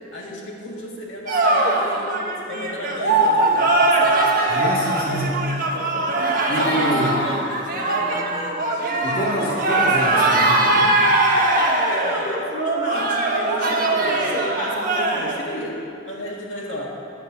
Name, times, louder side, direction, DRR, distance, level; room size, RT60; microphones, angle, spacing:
voice 1, 0.1-4.5 5.1-5.4 5.7-6.2 6.6-8.8 11.9-15.8 16.1-16.9, left 1 dB, 80° left, -4 dB, 1.8 m, -33 dB
sound 1, 1.3-15.4, right 2 dB, 50° right, 1.2 m, -20 dB
voice 2, 4.5-5.5 6.5-7.2 9.0-11.1, equal, 50° left, -4 dB, 1.7 m, -26 dB
10.0 x 6.0 x 8.0 m, 2.5 s
head